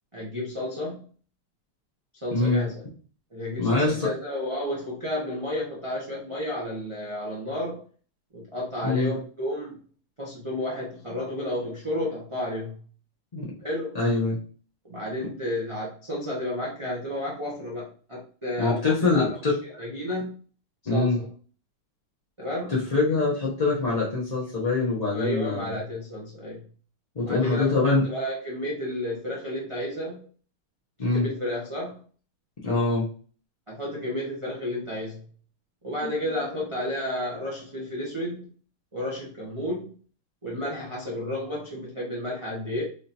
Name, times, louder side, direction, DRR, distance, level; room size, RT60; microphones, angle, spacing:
voice 1, 0.1-1.1 2.2-2.8 3.3-7.8 8.3-9.8 10.2-12.8 13.6-13.9 14.8-19.3 19.8-20.3 20.9-21.3 22.4-22.7 25.1-26.6 27.2-30.2 31.1-32.0 33.7-35.2 35.8-38.4 38.9-39.9 40.4-42.8, left 1 dB, 25° right, -6 dB, 0.6 m, -32 dB
voice 2, 2.3-2.6 3.6-4.1 8.8-9.1 13.3-13.5 13.9-14.4 18.6-19.6 20.9-21.2 22.7-25.8 27.1-28.0 31.0-31.3 32.6-33.1 36.0-36.1, left 3 dB, 60° left, -6 dB, 0.4 m, -24 dB
5.0 x 2.8 x 2.6 m, 0.41 s
omnidirectional pair, 2.3 m